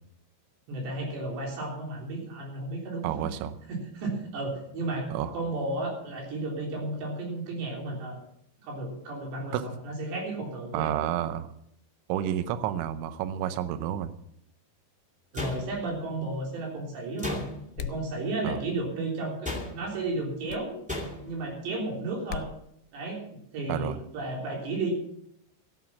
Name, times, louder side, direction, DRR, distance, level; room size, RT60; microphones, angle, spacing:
voice 1, 0.7-3.3 3.7-8.2 8.6-10.9 15.3-17.4 17.8-20.7 21.2-22.5 22.9-23.2 23.5-24.9, right 2 dB, 65° right, 0 dB, 5.6 m, -33 dB
voice 2, 3.0-3.6 5.1-5.3 9.5-9.6 10.7-11.5 12.1-14.1 18.4-18.6 23.7-24.0, right 10 dB, 85° right, 11 dB, 3.2 m, -30 dB
sound 1, 15.3-16.1 17.2-17.9 19.4-20.0 20.9-21.4, left 1 dB, 10° right, 0.3 m, -35 dB
sound 2, 17.8-18.1 20.5-20.7 22.3-22.5, left 10 dB, 85° left, 3.1 m, -37 dB
14.0 x 10.0 x 7.2 m, 0.74 s
omnidirectional pair, 5.4 m